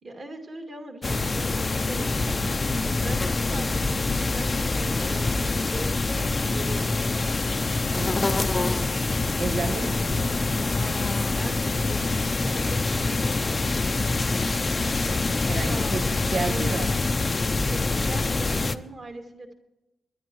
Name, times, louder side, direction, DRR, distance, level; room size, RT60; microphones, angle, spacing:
voice 1, 0.0-7.1 11.2-14.7 15.7-16.0 16.3-16.8 17.5-19.5, right 2 dB, 40° right, 2.2 m, -41 dB
sound 1, 1.0-18.8, left 3 dB, 20° left, 0.5 m, -25 dB
voice 2, 7.9-8.6 9.4-10.7 15.5-16.9, right 3 dB, 90° right, 1.5 m, -32 dB
22.5 x 10.5 x 3.1 m
wide cardioid pair, 180°, 0 cm